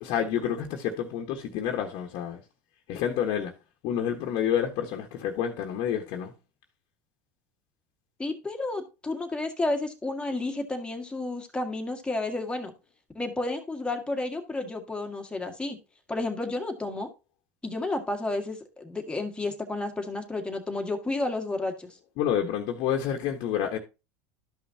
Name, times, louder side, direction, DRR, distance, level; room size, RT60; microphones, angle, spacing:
voice 1, 0.0-2.4 2.9-3.5 3.8-6.3 22.2-23.8, left 9 dB, 60° left, 1.3 m, -29 dB
voice 2, 8.2-12.7 13.1-15.8 16.1-17.1 17.6-22.0, left 2 dB, 10° left, 1.9 m, -31 dB
12.5 x 5.6 x 2.8 m
supercardioid pair, 100°, 9 cm